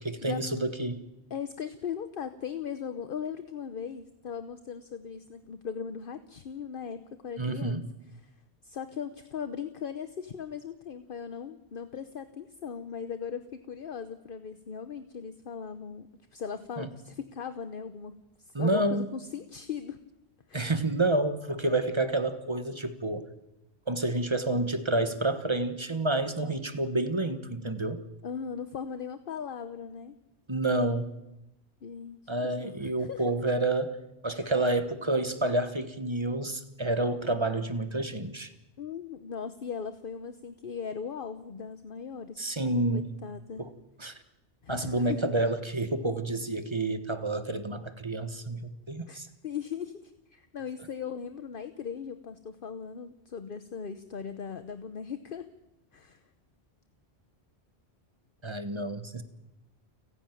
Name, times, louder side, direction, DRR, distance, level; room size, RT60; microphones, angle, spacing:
voice 1, 0.0-1.0 7.4-7.8 16.8-16.9 18.5-19.1 20.5-23.3 23.9-28.0 30.5-31.1 32.3-34.0 34.2-38.5 42.4-43.1 43.6-43.7 44.0-44.2 44.7-49.3 58.4-59.2, right 2 dB, 25° right, 10 dB, 1.3 m, -29 dB
voice 2, 1.3-7.8 8.2-8.3 8.6-18.2 18.4-20.0 20.5-20.7 26.4-26.5 28.2-30.1 31.8-32.2 32.4-33.2 34.4-34.5 38.8-42.4 42.9-43.6 44.6-45.3 49.1-55.5 55.9-56.2, left 7 dB, 55° left, 10 dB, 1.0 m, -38 dB
29.5 x 10.5 x 9.2 m, 0.93 s
omnidirectional pair, 1.1 m